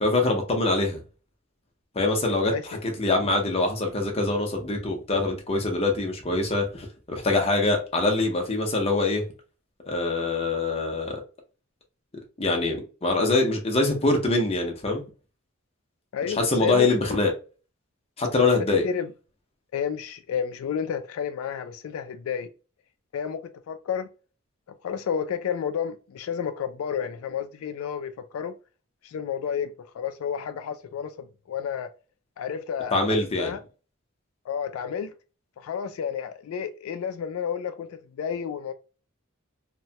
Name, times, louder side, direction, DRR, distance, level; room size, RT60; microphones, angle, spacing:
voice 1, 0.0-1.0 1.9-2.5 2.8-9.2 9.9-11.2 12.4-15.0 16.3-17.3 18.2-18.9 32.9-33.5, left 2 dB, 30° left, 0.7 m, -24 dB
voice 2, 16.1-16.9 18.8-19.1 19.7-22.5 23.1-23.4 23.7-24.1 24.8-28.5 29.0-31.9 32.4-33.6 34.5-35.1 35.6-38.7, left 7 dB, 85° left, 0.3 m, -31 dB
2.9 x 2.2 x 2.7 m
head